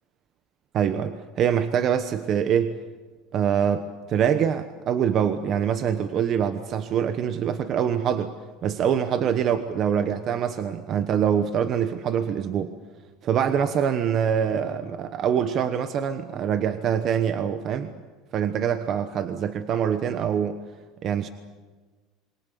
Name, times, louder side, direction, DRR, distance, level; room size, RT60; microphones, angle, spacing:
voice 1, 0.7-2.8 3.3-8.3 8.6-12.8 13.2-17.9 18.3-20.6 21.0-21.3, right 8 dB, 35° right, 10 dB, 1.1 m, -24 dB
28.0 x 22.5 x 7.0 m, 1.3 s
cardioid pair, 165°, 0 cm